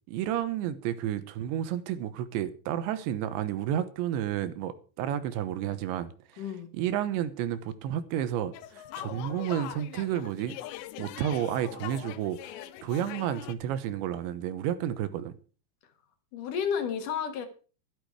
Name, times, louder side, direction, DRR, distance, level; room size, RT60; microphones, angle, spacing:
voice 1, 0.1-10.5 11.0-12.5 12.8-15.4, right 11 dB, 85° right, 3.4 m, -31 dB
voice 2, 6.4-6.7 16.3-17.5, left 7 dB, 60° left, 2.7 m, -31 dB
sound 1, 8.5-13.6, left 13 dB, 80° left, 3.0 m, -42 dB
12.5 x 12.0 x 4.7 m
omnidirectional pair, 5.1 m